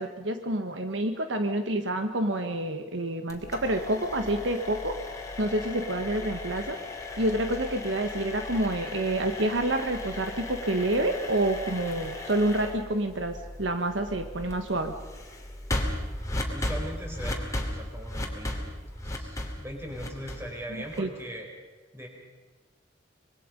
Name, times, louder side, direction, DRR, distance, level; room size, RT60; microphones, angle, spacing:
voice 1, 0.0-5.0 5.4-6.8 7.2-14.9 21.0-21.1, right 1 dB, 75° right, 6 dB, 1.5 m, -28 dB
sound 1, 3.3-21.2, left 1 dB, 15° left, 2.9 m, -36 dB
voice 2, 16.5-21.5 21.9-22.1, equal, 15° right, 0 dB, 4.9 m, -40 dB
25.5 x 22.5 x 5.3 m, 1.2 s
head